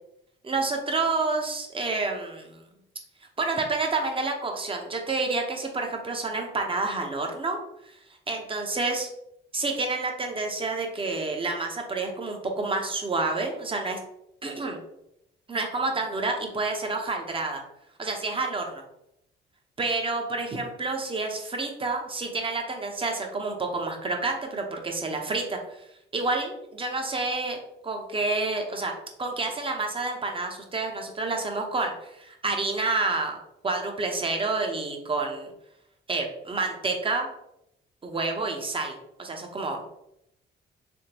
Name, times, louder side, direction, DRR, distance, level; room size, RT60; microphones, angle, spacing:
voice 1, 0.4-2.6 3.4-7.6 8.3-9.1 9.5-14.0 14.4-14.8 15.5-17.6 18.0-18.8 19.8-25.8 26.1-28.9 29.2-33.4 33.6-35.5 36.1-37.3 38.0-39.8, right 3 dB, 25° right, 3 dB, 0.8 m, -29 dB
3.5 x 3.2 x 2.9 m, 0.80 s
cardioid pair, 90°, 20 cm